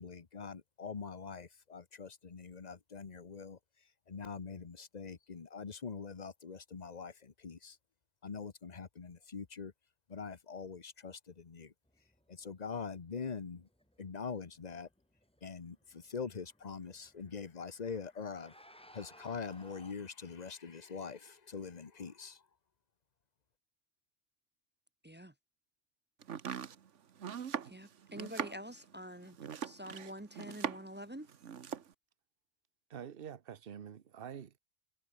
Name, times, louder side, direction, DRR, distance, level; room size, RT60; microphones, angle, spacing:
voice 1, 0.0-3.6 4.1-7.8 8.2-9.7 10.1-11.7 12.3-13.7 14.0-14.9 15.4-22.4, left 5 dB, 40° left, 1.1 m, -44 dB
sound 1, 11.9-19.9, equal, 5° left, 5.4 m, -63 dB
Domestic sounds home sounds, 26.2-31.0 31.3-31.9, right 8 dB, 80° right, 1.4 m, -41 dB
voice 2, 27.6-29.4 29.6-31.3, equal, 15° right, 0.4 m, -46 dB
voice 3, 32.9-34.6, right 8 dB, 55° right, 1.1 m, -46 dB
omnidirectional pair, 1.2 m